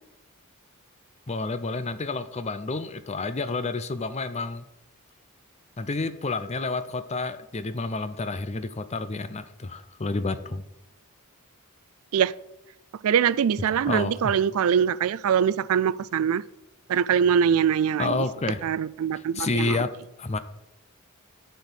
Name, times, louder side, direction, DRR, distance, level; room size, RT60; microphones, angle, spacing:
voice 1, 1.3-4.7 5.8-10.6 13.7-14.4 18.0-18.6 19.1-19.9 20.2-20.4, left 3 dB, 30° left, 0.6 m, -29 dB
voice 2, 13.0-16.4 16.9-18.2 18.6-19.8, right 8 dB, 70° right, 0.3 m, -23 dB
11.5 x 4.6 x 6.9 m
head